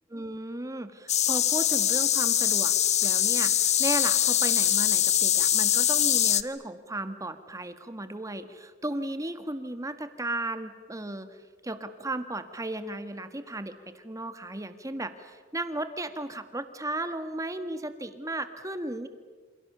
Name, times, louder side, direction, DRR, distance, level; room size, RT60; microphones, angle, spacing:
voice 1, 0.1-2.7 3.0-11.4 11.6-19.1, right 1 dB, 15° right, 9 dB, 1.6 m, -35 dB
sound 1, 1.1-6.4, left 10 dB, 35° left, 0.8 m, -23 dB
28.5 x 27.5 x 6.9 m, 1.5 s
head